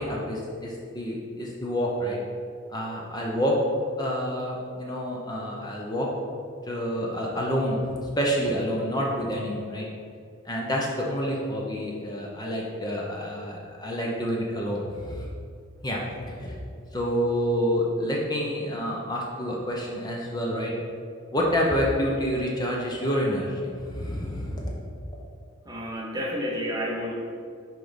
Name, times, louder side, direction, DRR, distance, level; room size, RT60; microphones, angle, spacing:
voice 1, 0.0-2.2 2.7-3.6 4.0-6.1 6.7-9.9 10.4-15.3 15.8-16.5 16.9-20.7 21.3-24.8, equal, 20° left, -2 dB, 0.8 m, -28 dB
voice 2, 25.6-27.1, equal, 20° right, -2 dB, 0.9 m, -30 dB
6.1 x 4.6 x 5.1 m, 2.3 s
head